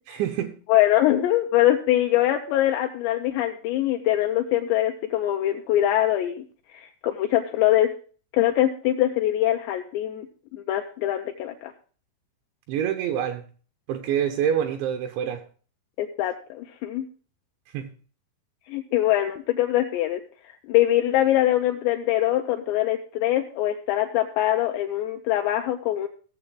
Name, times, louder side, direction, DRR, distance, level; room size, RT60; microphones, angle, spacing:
voice 1, 0.1-0.5 12.7-13.4 13.9-15.4 17.7-17.9, right 9 dB, 80° right, 4 dB, 2.9 m, -26 dB
voice 2, 0.7-7.9 8.3-10.3 10.5-11.7 16.0-17.1 18.7-26.1, left 13 dB, 80° left, 3 dB, 2.6 m, -23 dB
17.0 x 6.8 x 3.7 m, 0.41 s
omnidirectional pair, 5.6 m